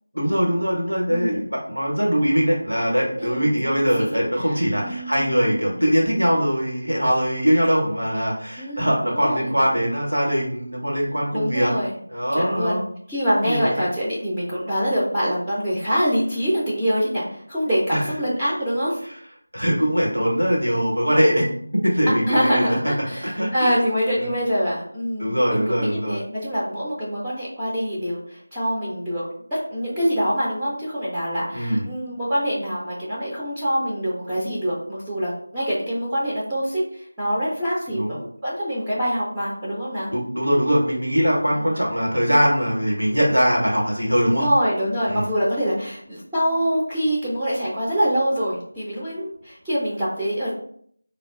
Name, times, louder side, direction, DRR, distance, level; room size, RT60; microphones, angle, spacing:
voice 1, 0.1-11.7 12.1-12.8 13.4-13.9 17.9-18.0 19.5-21.5 21.7-22.8 23.2-23.8 24.2-24.3 25.2-26.2 31.5-31.9 37.9-38.1 40.1-44.5 45.1-45.2, equal, 85° right, -2 dB, 1.1 m, -21 dB
voice 2, 1.1-1.4 3.2-3.6 3.8-4.2 4.5-5.7 8.5-9.5 11.3-12.0 12.3-12.8 13.1-19.0 22.3-29.2 29.5-40.1 41.5-41.8 44.2-50.5, equal, 5° right, -10 dB, 0.4 m, -25 dB
4.0 x 2.1 x 2.4 m, 0.64 s
figure-of-eight pair, 165°, 0 cm